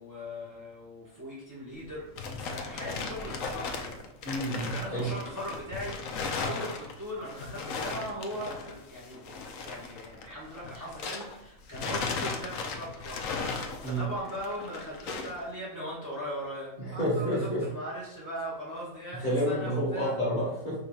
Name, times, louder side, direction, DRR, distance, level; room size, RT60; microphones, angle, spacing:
voice 1, 0.0-4.0 4.7-20.1, equal, 15° right, -6 dB, 1.3 m, -39 dB
sound 1, 1.8-11.4 11.7-15.4, left 4 dB, 80° left, 1.0 m, -37 dB
voice 2, 4.2-5.1 13.8-14.0 16.8-17.6 19.2-20.7, equal, 35° left, -6 dB, 1.7 m, -29 dB
5.5 x 4.0 x 2.2 m, 0.83 s
omnidirectional pair, 1.4 m